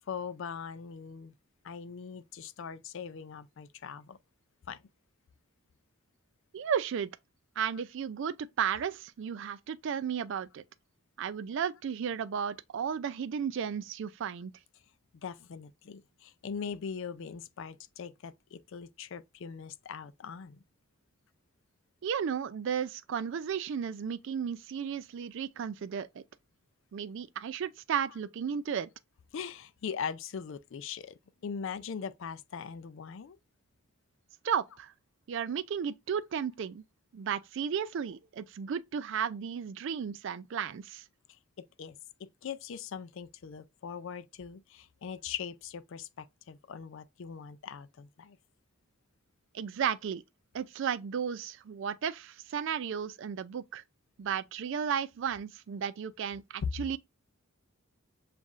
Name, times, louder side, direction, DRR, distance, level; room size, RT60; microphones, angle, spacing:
voice 1, 0.1-1.3 1.6-4.2 4.7-4.8 15.1-20.6 29.3-33.4 41.3-48.4 56.6-56.7, left 6 dB, 60° left, 0.4 m, -41 dB
voice 2, 6.5-7.1 7.6-10.6 11.2-14.5 22.0-26.2 26.9-28.9 34.4-34.9 35.3-36.8 37.1-41.0 49.5-50.2 50.5-53.8 54.2-57.0, right 7 dB, 55° right, 0.3 m, -34 dB
7.1 x 2.5 x 2.4 m
head